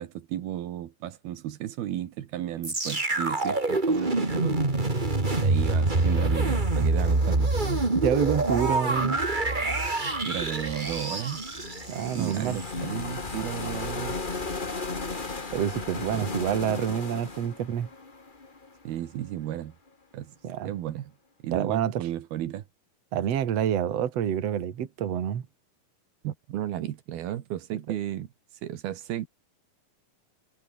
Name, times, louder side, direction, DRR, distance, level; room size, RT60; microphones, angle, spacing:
voice 1, 0.0-4.6 5.4-7.6 10.2-11.4 12.1-14.2 18.8-19.7 20.1-20.3 20.6-21.1 21.4-22.6 26.2-28.3 28.6-29.3, right 12 dB, 75° right, 3.4 m, -33 dB
sound 1, 2.6-12.7 13.3-13.4, right 2 dB, 15° right, 2.0 m, -26 dB
voice 2, 8.0-9.2 11.9-12.6 15.5-17.9 20.4-20.7 21.5-22.0 23.1-25.4, right 9 dB, 50° right, 2.7 m, -27 dB
sound 2, 11.0-19.1, left 3 dB, 65° left, 0.5 m, -35 dB
omnidirectional pair, 4.4 m